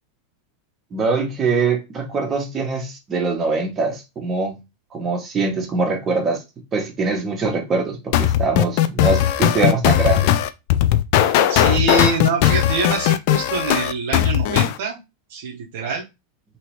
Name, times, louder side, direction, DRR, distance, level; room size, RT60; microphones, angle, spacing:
voice 1, 0.9-4.6 4.9-6.4 6.7-10.3, right 4 dB, 25° right, 1.0 m, -23 dB
sound 1, 8.1-14.8, left 12 dB, 50° left, 0.3 m, -17 dB
voice 2, 11.3-15.0 15.3-16.0, right 4 dB, 55° right, 0.8 m, -25 dB
2.9 x 2.8 x 3.0 m
figure-of-eight pair, 90°, 0 cm